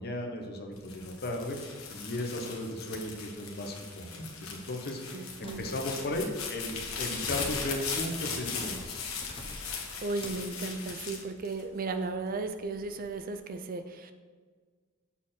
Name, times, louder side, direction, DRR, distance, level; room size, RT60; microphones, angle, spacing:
voice 1, 0.0-9.1, left 1 dB, 50° left, 2 dB, 1.0 m, -36 dB
sound 1, 0.8-12.1 12.6-13.2, left 5 dB, 80° left, 1.3 m, -38 dB
voice 2, 5.1-5.7 10.0-14.1, right 3 dB, 40° right, 9 dB, 0.4 m, -35 dB
sound 2, 5.4-8.0 8.7-9.8 10.2-10.5, left 1 dB, 25° left, 1.0 m, -47 dB
7.2 x 4.4 x 5.7 m, 1.5 s
head